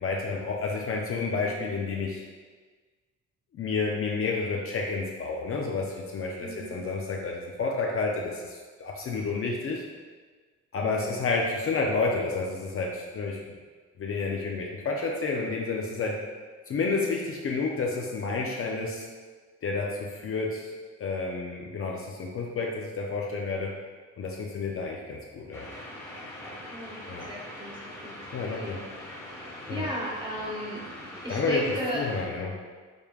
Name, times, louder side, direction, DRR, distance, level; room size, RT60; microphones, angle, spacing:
voice 1, 0.0-2.2 3.5-9.8 10.7-13.4 14.0-16.2 16.7-19.1 19.6-20.7 21.0-23.7 24.2-25.7 27.1-27.3 28.3-28.8 29.7-29.9 31.3-31.6 31.9-32.6, left 4 dB, 45° left, -1 dB, 0.6 m, -30 dB
voice 2, 6.4-6.7 10.8-11.1 26.7-28.8 29.7-32.0, equal, 15° right, -5 dB, 1.2 m, -36 dB
sound 1, 25.5-32.2, left 1 dB, 10° left, 1.2 m, -42 dB
5.3 x 3.2 x 2.3 m, 1.5 s
cardioid pair, 90°, 30 cm